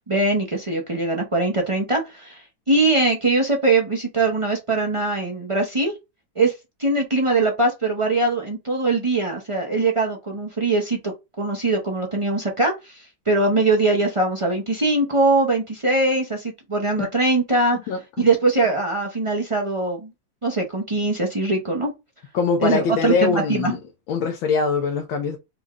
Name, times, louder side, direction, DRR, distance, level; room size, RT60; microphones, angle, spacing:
voice 1, 0.1-5.9 6.4-6.5 6.8-17.8 18.2-20.1 20.4-21.9 22.6-23.7, right 2 dB, 40° right, 0.4 m, -22 dB
voice 2, 17.9-18.3 22.3-23.8 24.1-25.4, left 5 dB, 85° left, 1.6 m, -23 dB
5.1 x 2.3 x 3.7 m
omnidirectional pair, 2.1 m